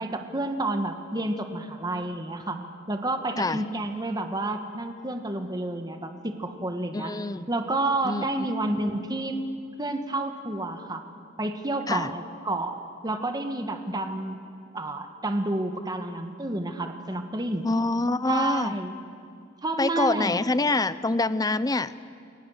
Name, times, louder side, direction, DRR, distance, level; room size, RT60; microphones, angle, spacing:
voice 1, 0.0-2.6 2.9-7.2 7.5-9.4 9.8-11.0 11.4-12.8 13.0-14.4 14.7-17.7 18.3-18.9 19.6-20.4, right 2 dB, 20° right, 6 dB, 1.4 m, -30 dB
voice 2, 6.9-7.5 8.0-8.5 11.9-12.1 17.6-18.7 19.8-21.9, left 2 dB, 20° left, 15 dB, 0.6 m, -26 dB
29.5 x 21.5 x 6.5 m, 2.4 s
head